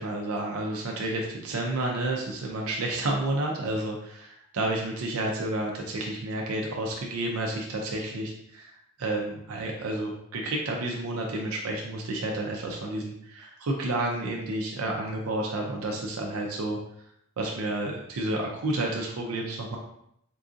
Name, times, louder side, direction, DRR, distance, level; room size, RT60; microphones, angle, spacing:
voice 1, 0.0-8.7 9.0-16.8 17.4-19.8, right 2 dB, 80° right, 0 dB, 0.5 m, -30 dB
4.6 x 2.5 x 2.4 m, 0.74 s
head